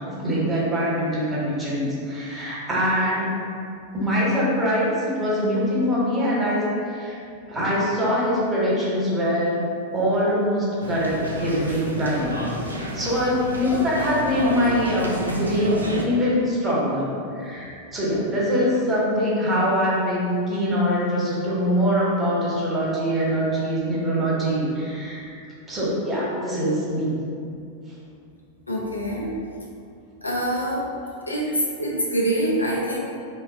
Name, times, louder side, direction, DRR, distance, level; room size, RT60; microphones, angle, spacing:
voice 1, 0.2-3.3 3.9-7.2 7.5-9.6 9.9-27.1, equal, 15° right, -7 dB, 1.0 m, -23 dB
sound 1, 10.8-16.0, equal, 80° right, 0.4 m, -31 dB
voice 2, 28.7-29.3 30.2-30.9 31.3-31.5 31.8-33.0, right 1 dB, 80° left, -3 dB, 0.5 m, -25 dB
2.9 x 2.2 x 3.8 m, 2.4 s
figure-of-eight pair, 90°, 0 cm